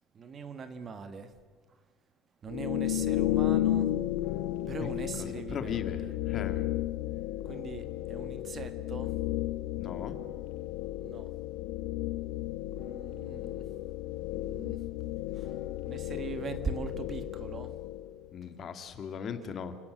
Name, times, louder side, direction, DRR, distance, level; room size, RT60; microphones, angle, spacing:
voice 1, 0.1-1.3 1.7-1.8 2.4-4.0 4.7-6.1 7.4-9.2 11.0-11.4 12.7-13.7 14.3-14.9 15.2-17.8, right 5 dB, 25° right, 1.5 m, -41 dB
sound 1, 2.5-18.3, left 14 dB, 75° left, 1.0 m, -33 dB
voice 2, 5.3-6.7 9.7-10.2 18.3-19.8, left 7 dB, 30° left, 1.9 m, -38 dB
29.5 x 18.0 x 7.9 m
cardioid pair, 170°, 0 cm